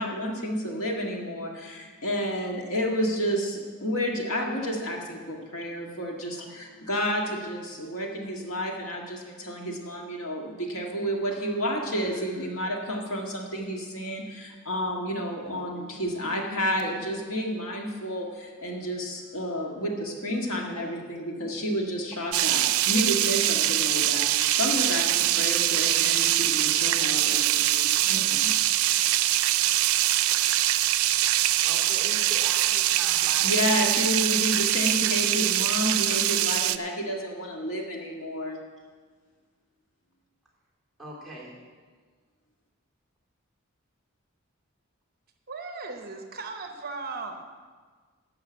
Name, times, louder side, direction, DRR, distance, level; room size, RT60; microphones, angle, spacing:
voice 1, 0.0-28.6 33.4-38.6, equal, 75° left, 0 dB, 1.8 m, -30 dB
sound 1, 22.3-36.8, right 14 dB, 85° right, 0.4 m, -23 dB
voice 2, 31.2-33.5 41.0-41.5, right 2 dB, ahead, -5 dB, 3.2 m, -41 dB
voice 3, 45.5-47.4, right 3 dB, 45° right, 4 dB, 0.9 m, -37 dB
11.5 x 6.3 x 7.9 m, 1.5 s
head